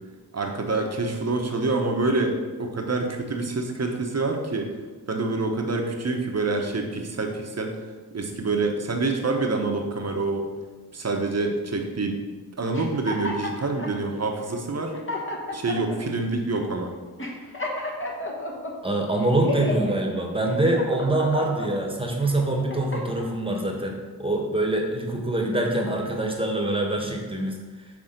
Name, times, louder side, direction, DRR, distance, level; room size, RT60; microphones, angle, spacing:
voice 1, 0.3-4.7 5.1-7.7 8.1-10.5 10.9-12.2 12.6-14.9 15.5-16.9, right 3 dB, 40° right, 2 dB, 1.0 m, -26 dB
sound 1, 12.7-13.9 14.6-14.7 14.9-16.0 16.6-16.7 17.2-18.7 19.2-19.9 20.4-21.7 22.3-23.3, left 2 dB, 30° left, 1.2 m, -32 dB
voice 2, 18.8-27.6, right 1 dB, 15° right, 1 dB, 1.3 m, -25 dB
5.8 x 3.5 x 5.1 m, 1.4 s
cardioid pair, 45°, 41 cm